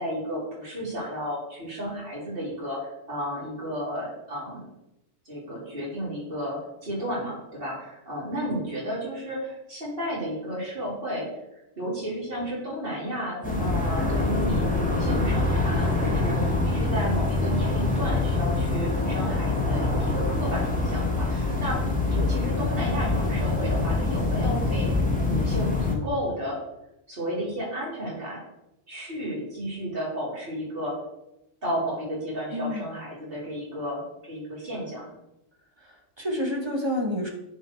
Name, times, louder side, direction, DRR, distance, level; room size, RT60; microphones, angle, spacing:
voice 1, 0.0-4.7 5.3-11.3 11.8-21.8 22.1-25.0 25.3-26.6 27.1-28.4 28.9-31.0 31.6-35.1, equal, 45° right, -6 dB, 3.6 m, -32 dB
sound 1, 13.4-26.0, left 2 dB, 5° left, 1.3 m, -25 dB
voice 2, 32.5-32.9 35.8-37.3, left 1 dB, 20° right, 1 dB, 1.1 m, -29 dB
9.6 x 4.5 x 4.5 m, 0.89 s
omnidirectional pair, 1.3 m